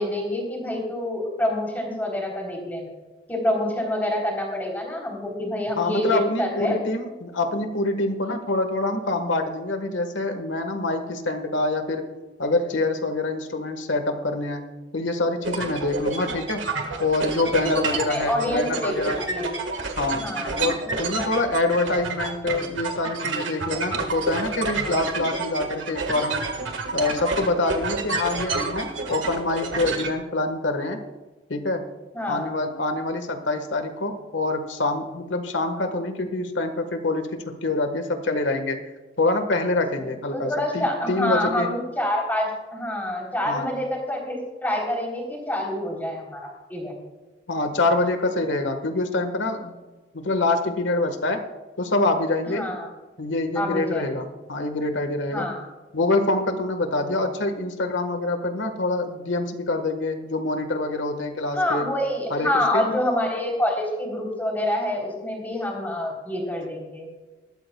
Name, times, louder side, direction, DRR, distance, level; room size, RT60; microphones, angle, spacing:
voice 1, 0.0-2.9 3.3-6.8 17.6-17.7 18.1-19.5 20.1-21.0 32.1-32.5 39.7-47.0 52.5-52.9 53.6-54.2 55.3-55.7 61.5-67.1, left 1 dB, 10° left, -2 dB, 3.5 m, -27 dB
voice 2, 5.8-12.0 12.4-14.6 14.9-16.6 17.0-19.2 20.0-20.2 20.6-26.4 26.9-31.0 31.5-31.8 32.3-38.8 39.2-41.7 43.5-43.7 47.5-49.8 50.1-51.4 51.8-52.6 53.2-55.5 55.9-61.9 62.3-62.8, left 2 dB, 85° left, 7 dB, 1.5 m, -25 dB
sound 1, 15.4-30.1, right 4 dB, 90° right, 1.7 m, -29 dB
20.5 x 13.0 x 2.3 m, 1.2 s
head